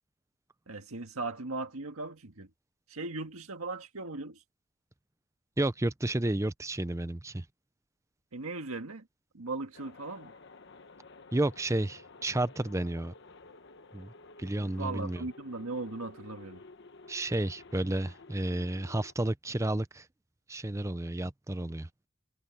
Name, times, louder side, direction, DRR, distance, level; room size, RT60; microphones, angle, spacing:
voice 1, 0.7-2.5 2.9-4.4 8.3-9.1 9.3-10.3 14.6-16.6, right 3 dB, 85° right, 1.7 m, -38 dB
voice 2, 5.6-7.5 11.3-13.1 13.9-14.1 14.4-15.2 17.1-20.1 20.5-21.9, right 1 dB, 15° right, 0.6 m, -31 dB
sound 1, 9.7-19.1, left 3 dB, 55° left, 1.2 m, -52 dB
head